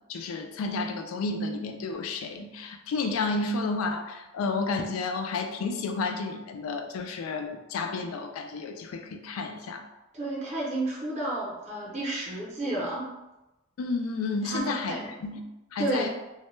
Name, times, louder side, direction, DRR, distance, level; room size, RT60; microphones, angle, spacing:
voice 1, 0.1-9.8 13.8-14.9 15.2-15.4 15.7-16.1, left 3 dB, 75° left, 5 dB, 0.3 m, -31 dB
voice 2, 10.1-13.1 14.4-15.1 15.8-16.1, right 2 dB, 30° right, -5 dB, 0.6 m, -31 dB
2.1 x 2.1 x 3.0 m, 0.98 s
head